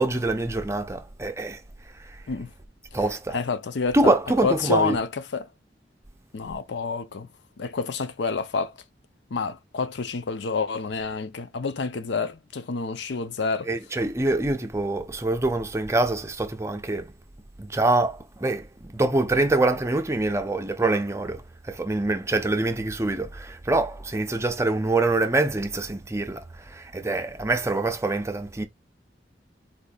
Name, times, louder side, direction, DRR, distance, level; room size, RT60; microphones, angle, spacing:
voice 1, 0.0-1.6 2.9-3.4 3.9-5.0 13.7-17.1 17.6-28.7, right 2 dB, 15° right, 0.5 m, -25 dB
voice 2, 3.3-4.1 4.4-5.5 6.3-7.3 7.6-8.7 9.3-13.7, left 4 dB, 75° left, 0.5 m, -28 dB
4.2 x 2.7 x 2.3 m
head